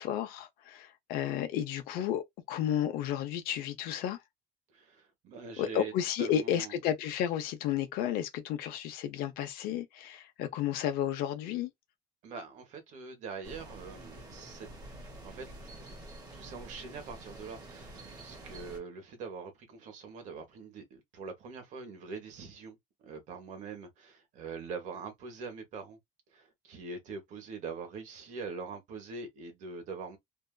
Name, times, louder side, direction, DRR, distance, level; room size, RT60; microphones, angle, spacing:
voice 1, 0.0-4.2 5.6-11.7, left 10 dB, 65° left, 0.8 m, -32 dB
voice 2, 4.7-5.9 6.2-6.8 12.2-14.7 15.2-15.8 16.3-22.8 23.0-26.0 26.3-30.2, right 4 dB, 50° right, 1.2 m, -43 dB
sound 1, 13.4-18.8, right 1 dB, 25° right, 1.0 m, -48 dB
2.7 x 2.5 x 2.2 m
cardioid pair, 175°, 16 cm